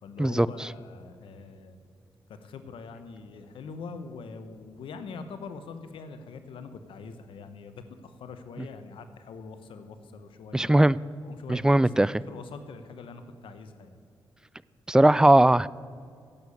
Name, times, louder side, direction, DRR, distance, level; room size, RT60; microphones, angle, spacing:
voice 1, 0.0-1.8 2.3-10.7 11.2-14.0, left 4 dB, 75° left, 10 dB, 1.0 m, -43 dB
voice 2, 10.5-11.0 11.5-12.1 14.9-15.7, right 1 dB, 10° right, 20 dB, 0.3 m, -19 dB
10.5 x 8.3 x 8.3 m, 2.3 s
supercardioid pair, 55°, 9 cm